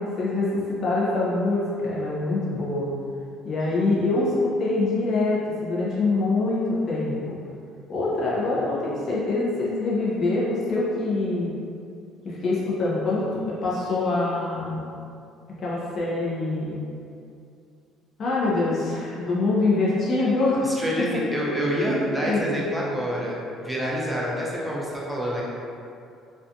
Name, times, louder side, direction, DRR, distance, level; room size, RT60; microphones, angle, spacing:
voice 1, 0.0-2.9 3.4-7.4 7.9-11.5 12.2-14.8 15.6-16.8 18.2-20.6 21.8-21.9 22.2-22.4, left 2 dB, 45° left, -7 dB, 0.5 m, -24 dB
voice 2, 20.6-25.4, equal, 10° right, -5 dB, 0.6 m, -27 dB
2.5 x 2.2 x 2.5 m, 2.5 s
supercardioid pair, 95°, 0 cm